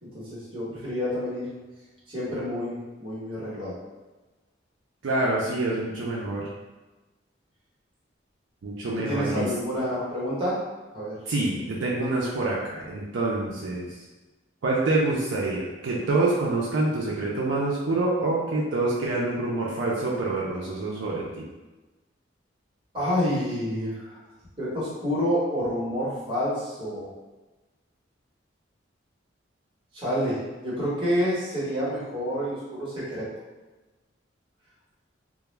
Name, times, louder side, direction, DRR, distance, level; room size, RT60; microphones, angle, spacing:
voice 1, 0.0-1.5 2.1-3.8 9.0-10.6 10.9-11.2 22.9-24.2 24.6-27.1 29.9-33.3, equal, 25° right, -10 dB, 1.0 m, -28 dB
voice 2, 5.0-6.5 8.6-9.5 11.3-13.9 14.6-21.5, right 2 dB, 75° right, -4 dB, 0.4 m, -26 dB
2.2 x 2.0 x 3.1 m, 1.2 s
head